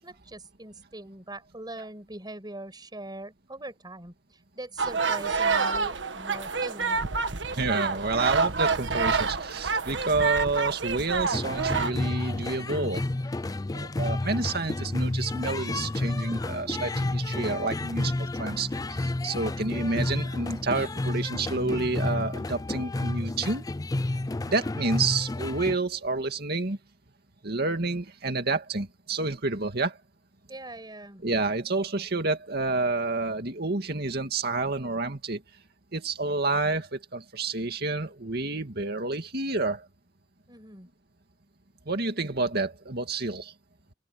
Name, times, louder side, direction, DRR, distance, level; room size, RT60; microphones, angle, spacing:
voice 1, 0.0-4.1 4.5-7.0 30.5-31.2 40.5-40.9, right 2 dB, 25° right, 5.8 m, -41 dB
sound 1, 4.8-11.9, right 4 dB, 75° right, 1.5 m, -28 dB
voice 2, 7.5-13.0 13.7-23.6 24.5-26.8 27.4-30.0 31.2-35.4 35.9-39.9 41.9-43.5, right 3 dB, 60° right, 2.3 m, -29 dB
sound 2, 11.3-25.8, left 2 dB, 20° left, 0.4 m, -31 dB
open air
head